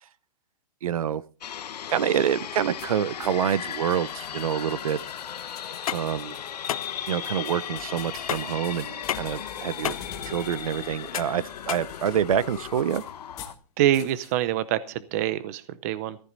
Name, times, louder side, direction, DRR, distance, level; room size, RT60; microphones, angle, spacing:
voice 1, 0.8-1.2 1.9-5.0 5.9-6.4 7.1-10.0 10.3-13.0, right 9 dB, 60° right, 19 dB, 0.7 m, -27 dB
sound 1, 1.4-13.5, left 9 dB, 85° left, 1.2 m, -37 dB
sound 2, 2.8-13.6 13.9-14.3, left 8 dB, 15° left, 1.8 m, -47 dB
sound 3, 5.7-12.6, left 10 dB, 60° left, 0.7 m, -35 dB
voice 2, 13.8-16.2, right 12 dB, 25° right, 16 dB, 0.6 m, -25 dB
14.5 x 13.5 x 4.0 m, 0.38 s
hypercardioid pair, 175°, 20 cm